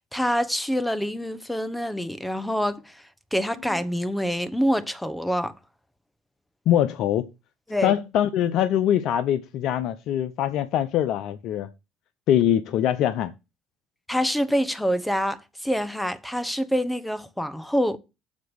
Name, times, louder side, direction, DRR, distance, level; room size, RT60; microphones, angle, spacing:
voice 1, 0.1-3.0 3.3-5.5 7.7-7.9 14.1-18.0, equal, 5° left, 1.0 m, -26 dB
voice 2, 6.7-7.3 7.8-11.7 12.3-13.3, left 11 dB, 65° left, 0.6 m, -23 dB
7.4 x 4.6 x 6.2 m
hypercardioid pair, 65°, 0 cm